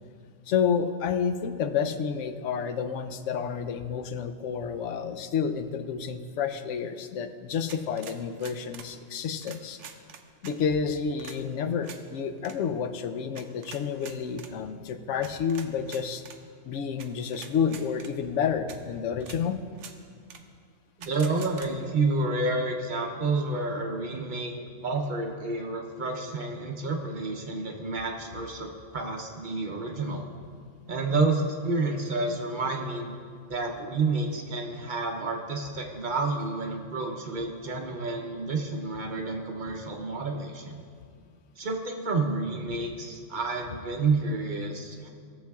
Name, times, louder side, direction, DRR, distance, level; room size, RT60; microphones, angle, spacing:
voice 1, 0.5-9.8 10.4-16.2 16.6-19.6, left 7 dB, 75° left, 8 dB, 0.9 m, -30 dB
sound 1, 7.7-8.9 9.4-10.6 11.2-11.4 11.8-12.0 12.4-12.6 13.4-14.5 15.2-16.4 17.0-17.1 17.3-18.1 18.7-18.8 19.2-19.4 19.8-20.0 20.3-20.4 21.0-21.7, right 7 dB, 75° right, 0.9 m, -45 dB
voice 2, 21.0-24.5 24.8-30.2 30.9-33.1 33.5-40.8 41.6-45.1, right 3 dB, 45° right, 2 dB, 0.7 m, -29 dB
16.5 x 7.2 x 2.3 m, 2.1 s
omnidirectional pair, 1.3 m